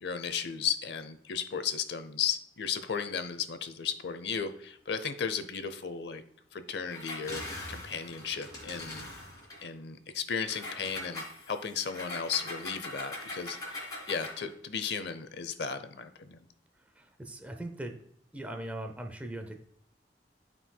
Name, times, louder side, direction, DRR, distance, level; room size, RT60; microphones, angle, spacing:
voice 1, 0.0-6.2 6.5-9.1 9.6-16.4, left 7 dB, 70° left, 10 dB, 0.7 m, -35 dB
Engine, 6.9-9.6 10.4-14.5, left 2 dB, 25° left, 2.5 m, -41 dB
voice 2, 17.0-17.9 18.3-19.6, right 1 dB, 10° right, 4 dB, 0.6 m, -40 dB
12.5 x 4.6 x 2.3 m, 0.68 s
head